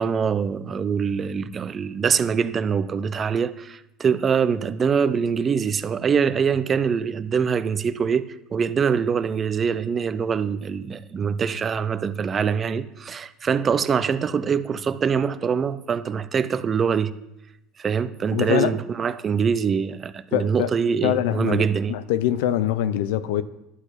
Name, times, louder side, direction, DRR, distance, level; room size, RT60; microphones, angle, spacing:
voice 1, 0.0-17.1 17.8-22.0, right 6 dB, 30° right, 0.6 m, -24 dB
voice 2, 18.3-18.8 20.3-20.7 21.0-23.4, left 12 dB, 85° left, 0.7 m, -24 dB
11.0 x 6.0 x 8.2 m
supercardioid pair, 130°, 0 cm